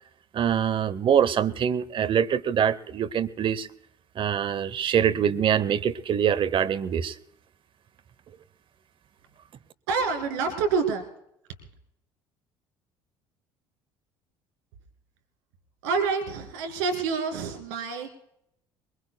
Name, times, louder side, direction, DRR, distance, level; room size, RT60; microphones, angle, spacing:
voice 1, 0.3-3.7 4.2-7.1, right 8 dB, 45° right, 16 dB, 0.8 m, -24 dB
voice 2, 9.9-11.0 15.8-18.1, right 5 dB, 75° right, 6 dB, 2.3 m, -27 dB
22.0 x 21.5 x 2.2 m, 0.75 s
hypercardioid pair, 65°, 12 cm